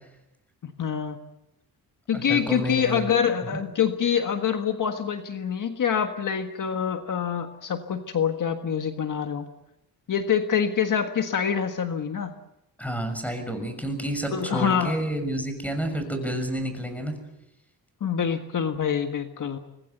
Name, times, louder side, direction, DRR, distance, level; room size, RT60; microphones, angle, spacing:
voice 1, 0.6-1.2 2.1-9.4 10.1-12.3 14.3-15.0 18.0-19.6, left 7 dB, 55° left, 6 dB, 1.6 m, -26 dB
voice 2, 2.1-3.1 3.5-3.6 12.8-17.2, right 1 dB, 5° left, 7 dB, 6.7 m, -29 dB
25.5 x 20.0 x 8.1 m, 0.90 s
cardioid pair, 105°, 37 cm